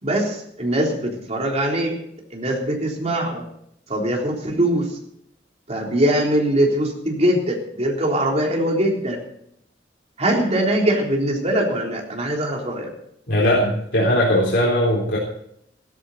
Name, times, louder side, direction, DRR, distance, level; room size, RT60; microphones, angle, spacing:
voice 1, 0.0-1.9 2.3-3.4 3.9-4.9 5.7-9.2 10.2-12.9, right 1 dB, 40° right, 0 dB, 3.7 m, -22 dB
voice 2, 13.3-15.2, equal, 75° left, -5 dB, 3.9 m, -19 dB
16.0 x 13.5 x 4.3 m, 0.74 s
head